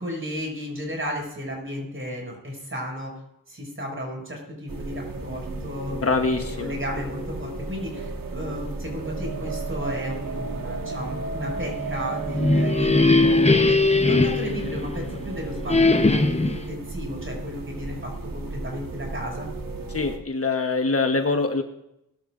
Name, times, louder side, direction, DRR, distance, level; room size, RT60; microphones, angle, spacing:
voice 1, 0.0-3.1 3.5-19.5, equal, 35° right, 0 dB, 6.5 m, -34 dB
sound 1, 4.7-20.2, right 3 dB, 70° right, 1.8 m, -33 dB
voice 2, 6.0-6.7 19.9-21.6, left 3 dB, 40° left, 5 dB, 1.2 m, -24 dB
sound 2, 12.1-15.2 15.7-16.7, left 3 dB, 20° left, 0.9 m, -20 dB
21.0 x 12.5 x 2.6 m, 0.81 s
wide cardioid pair, 85°, 35 cm